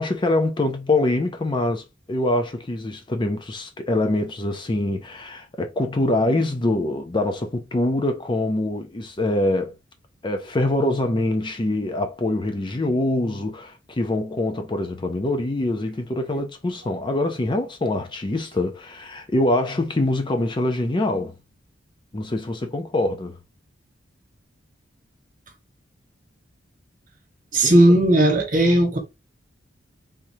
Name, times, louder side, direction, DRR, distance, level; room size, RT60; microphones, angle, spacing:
voice 1, 0.0-9.8 10.2-21.3 22.1-23.4 27.6-27.8, left 1 dB, 25° left, 0.5 m, -24 dB
voice 2, 27.5-29.0, right 1 dB, 45° right, 1.3 m, -16 dB
3.6 x 3.1 x 2.7 m
head